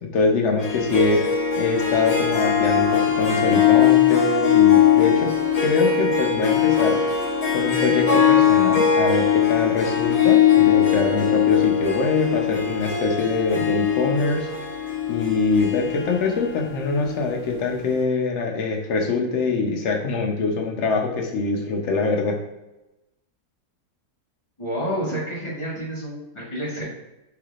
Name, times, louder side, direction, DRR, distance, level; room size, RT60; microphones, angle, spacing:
voice 1, 0.1-2.9 3.2-5.3 5.6-7.0 7.5-14.5 15.1-22.4, left 3 dB, 60° left, 1 dB, 0.8 m, -24 dB
Harp, 0.6-17.4, left 8 dB, 85° left, 0.3 m, -20 dB
voice 2, 24.6-26.9, equal, 25° left, -6 dB, 0.9 m, -29 dB
3.4 x 3.3 x 2.4 m, 0.96 s
omnidirectional pair, 1.6 m